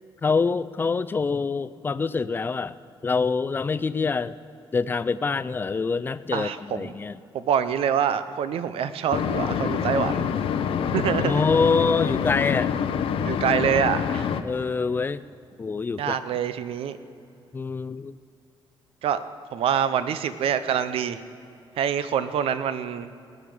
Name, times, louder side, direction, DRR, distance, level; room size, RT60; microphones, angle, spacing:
voice 1, 0.2-2.7 3.0-4.4 4.7-7.2 11.3-12.7 14.4-15.2 15.6-16.2 17.5-18.1, left 4 dB, 20° left, 15 dB, 0.4 m, -25 dB
voice 2, 6.3-6.9 7.3-10.3 10.9-11.5 13.2-14.3 16.0-17.0 19.0-19.2 19.5-21.2 21.8-23.1, right 8 dB, 85° right, 12 dB, 0.7 m, -25 dB
sound 1, 9.1-14.4, left 8 dB, 75° left, 0.7 m, -26 dB
20.0 x 8.6 x 5.0 m, 2.6 s
wide cardioid pair, 150°, 9 cm